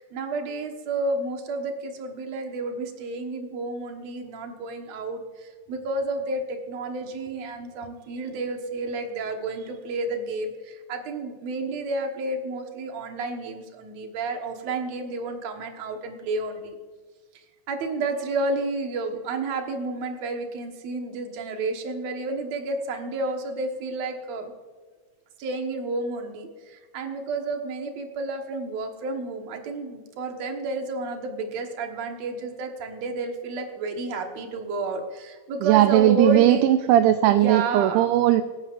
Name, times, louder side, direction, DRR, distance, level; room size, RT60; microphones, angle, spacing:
voice 1, 0.0-16.8 17.7-24.5 25.4-36.7 37.3-38.1, right 2 dB, 60° right, 4 dB, 2.3 m, -31 dB
voice 2, 35.6-38.4, right 13 dB, 80° right, 9 dB, 1.9 m, -18 dB
25.0 x 9.7 x 2.5 m, 1.4 s
omnidirectional pair, 4.0 m